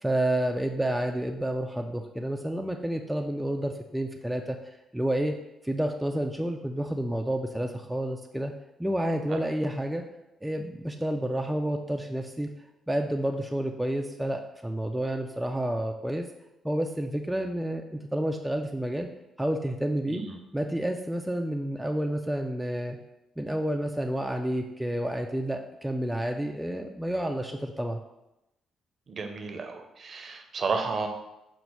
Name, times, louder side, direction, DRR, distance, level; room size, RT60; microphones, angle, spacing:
voice 1, 0.0-4.6 4.9-5.3 5.6-8.5 8.8-10.0 10.4-12.5 12.9-16.3 16.6-19.1 19.4-20.2 20.5-23.0 23.4-28.0, right 1 dB, 5° right, 3 dB, 0.3 m, -30 dB
voice 2, 20.1-20.4 29.1-31.1, right 4 dB, 45° right, 5 dB, 0.6 m, -32 dB
5.2 x 2.0 x 4.5 m, 0.90 s
cardioid pair, 90°, 0 cm